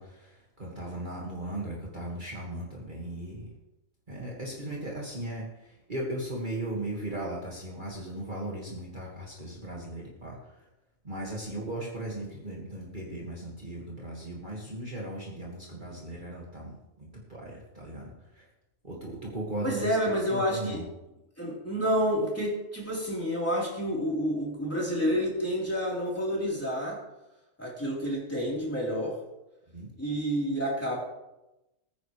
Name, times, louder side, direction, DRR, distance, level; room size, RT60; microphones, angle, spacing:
voice 1, 0.0-3.5 4.1-10.7 11.0-18.5 18.8-20.0 20.3-20.8 29.7-29.9, right 1 dB, 35° right, -4 dB, 2.2 m, -37 dB
voice 2, 19.6-20.8 21.4-27.0 27.6-29.2 30.0-31.0, equal, 10° left, -5 dB, 4.0 m, -29 dB
20.5 x 9.6 x 3.3 m, 0.95 s
omnidirectional pair, 1.5 m